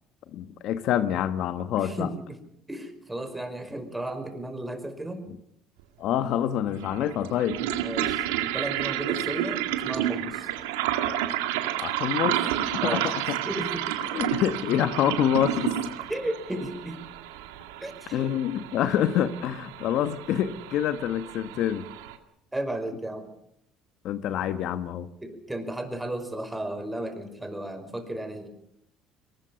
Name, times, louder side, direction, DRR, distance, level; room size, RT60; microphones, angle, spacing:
voice 1, 0.3-2.1 6.0-7.6 11.8-12.4 12.7-13.4 14.1-15.8 18.1-21.9 24.0-25.1, left 10 dB, 65° left, 12 dB, 1.3 m, -26 dB
voice 2, 1.8-2.4 2.7-5.3 7.8-10.5 12.8-14.0 16.1-17.0 17.8-18.3 18.8-18.9 22.5-23.3 25.2-28.5, right 1 dB, 10° right, 8 dB, 5.3 m, -34 dB
sound 1, 5.8-5.9 6.8-22.2, right 12 dB, 90° right, 2.1 m, -31 dB
23.0 x 20.0 x 7.1 m, 0.74 s
supercardioid pair, 80°, 0 cm